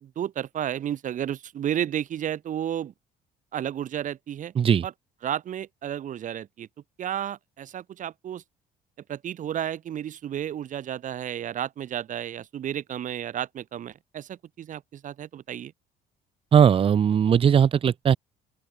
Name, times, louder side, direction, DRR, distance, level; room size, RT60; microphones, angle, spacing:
voice 1, 0.0-2.9 3.5-4.5 4.8-4.9 5.2-6.7 7.0-8.4 9.1-15.7, right 10 dB, 50° right, 1.0 m, -32 dB
voice 2, 16.5-18.2, right 8 dB, 35° right, 0.6 m, -19 dB
open air
cardioid pair, 110°, 17 cm